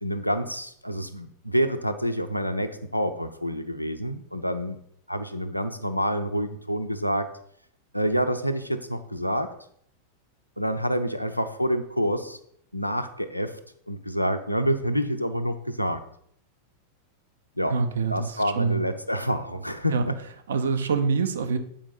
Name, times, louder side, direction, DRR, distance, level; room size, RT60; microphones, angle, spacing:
voice 1, 0.0-4.8 5.1-7.3 7.9-9.5 10.6-12.4 12.7-13.6 13.9-16.0 17.6-17.8 18.1-20.2, equal, 90° left, 8 dB, 0.6 m, -27 dB
voice 2, 17.7-18.8 19.9-20.1 20.5-21.6, right 5 dB, 65° right, 10 dB, 0.7 m, -25 dB
7.1 x 5.1 x 5.3 m, 0.67 s
figure-of-eight pair, 90°, 0 cm